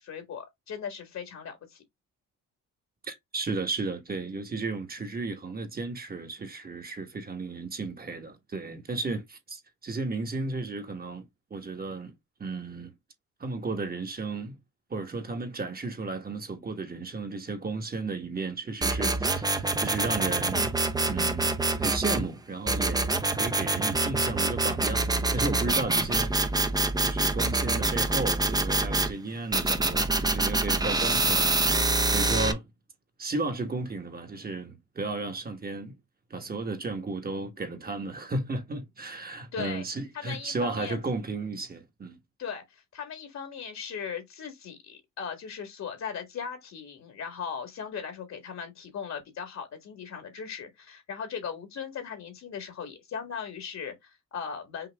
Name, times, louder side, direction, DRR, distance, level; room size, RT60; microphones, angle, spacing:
voice 1, 0.0-1.8 39.5-39.8 40.1-41.0 42.4-54.9, left 7 dB, 60° left, 1.7 m, -38 dB
voice 2, 3.0-12.1 12.4-12.9 13.4-14.6 14.9-20.7 21.1-26.4 27.0-32.6 33.2-36.0 36.3-42.2, right 3 dB, 30° right, 1.3 m, -34 dB
sound 1, 18.8-22.2 22.7-29.1 29.5-32.5, right 2 dB, 15° right, 0.7 m, -26 dB
5.7 x 2.5 x 3.4 m
cardioid pair, 90°, 30 cm